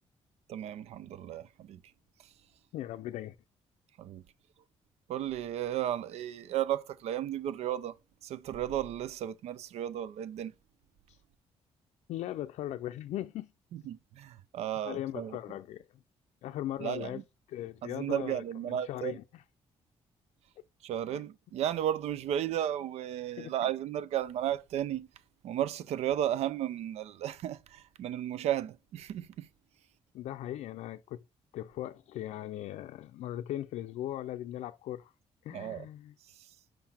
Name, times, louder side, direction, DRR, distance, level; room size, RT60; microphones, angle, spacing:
voice 1, 0.5-1.8 4.0-4.2 5.1-8.0 8.2-10.5 13.7-15.4 16.8-17.2 17.8-19.2 20.8-25.1 25.4-29.5 35.5-35.9, right 11 dB, 70° right, 0.5 m, -34 dB
voice 2, 2.7-3.4 11.1-11.2 12.1-13.5 14.8-16.0 16.4-17.2 17.5-19.4 21.1-21.2 23.4-23.5 30.1-31.2 31.5-35.1 35.4-36.1, left 13 dB, 90° left, 0.4 m, -39 dB
5.8 x 5.2 x 4.3 m
cardioid pair, 175°, 11 cm